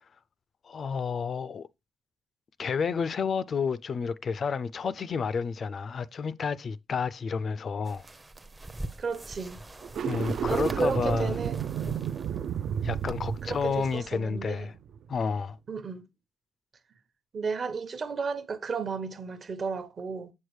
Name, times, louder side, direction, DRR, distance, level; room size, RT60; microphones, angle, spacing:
voice 1, 0.6-1.7 2.6-8.0 10.0-11.3 12.8-14.7 15.1-15.6, left 5 dB, 50° left, 0.4 m, -30 dB
sound 1, 7.8-14.0, right 1 dB, 20° right, 0.6 m, -44 dB
voice 2, 9.0-9.6 10.5-11.6 13.4-14.7 15.7-16.0 17.3-20.3, right 5 dB, 45° right, 0.9 m, -33 dB
sound 2, 9.8-15.1, right 8 dB, 65° right, 0.4 m, -32 dB
7.1 x 6.4 x 3.2 m
cardioid pair, 90°, 0 cm